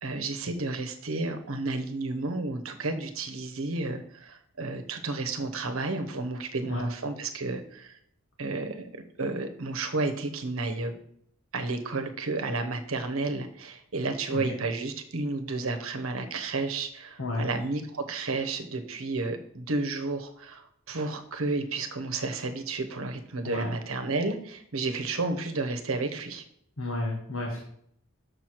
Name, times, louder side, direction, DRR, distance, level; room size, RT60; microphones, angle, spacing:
voice 1, 0.0-8.0 8.4-11.0 11.5-26.4, right 3 dB, 80° right, 6 dB, 1.0 m, -32 dB
voice 2, 26.8-27.6, left 2 dB, 75° left, -1 dB, 1.4 m, -31 dB
6.6 x 4.5 x 6.4 m, 0.68 s
head